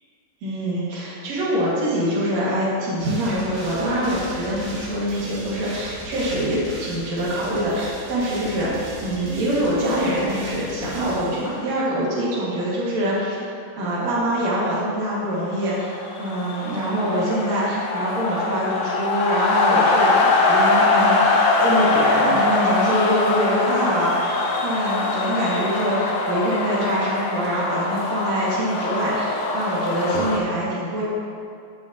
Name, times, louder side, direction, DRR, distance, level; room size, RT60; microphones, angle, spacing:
voice 1, 0.4-8.7 9.0-13.5 13.8-24.1 24.6-31.0, equal, 50° right, -8 dB, 3.1 m, -24 dB
sound 1, 3.0-11.8, equal, 75° right, 4.0 m, -38 dB
sound 2, 15.6-30.4, left 3 dB, 80° left, 2.8 m, -22 dB
16.0 x 5.7 x 3.0 m, 2.4 s
omnidirectional pair, 4.2 m